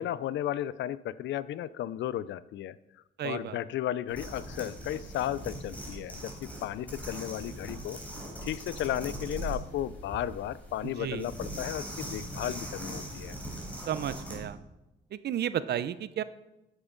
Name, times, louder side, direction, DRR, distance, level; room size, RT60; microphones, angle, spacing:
voice 1, 0.0-2.8 3.2-8.0 8.4-13.4, left 12 dB, 70° left, 18 dB, 0.4 m, -34 dB
voice 2, 3.2-3.6 10.8-11.3 13.9-14.6 15.1-16.2, right 10 dB, 55° right, 15 dB, 0.6 m, -33 dB
sound 1, 4.1-14.4, right 1 dB, 5° left, 3.8 m, -41 dB
9.8 x 8.0 x 3.9 m, 0.96 s
cardioid pair, 90°, 20 cm